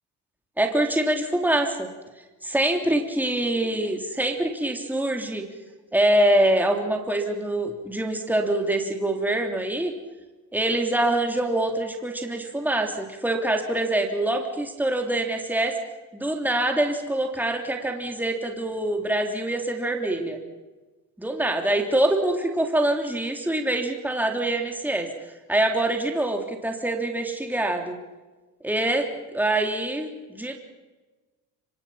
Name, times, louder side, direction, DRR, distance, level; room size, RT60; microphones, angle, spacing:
voice 1, 0.6-1.9 2.4-5.4 5.9-9.9 10.5-15.8 16.1-20.4 21.2-25.1 25.5-28.0 28.6-30.6, right 1 dB, 5° right, 3 dB, 3.3 m, -25 dB
25.5 x 24.0 x 5.8 m, 1.2 s
supercardioid pair, 80°, 39 cm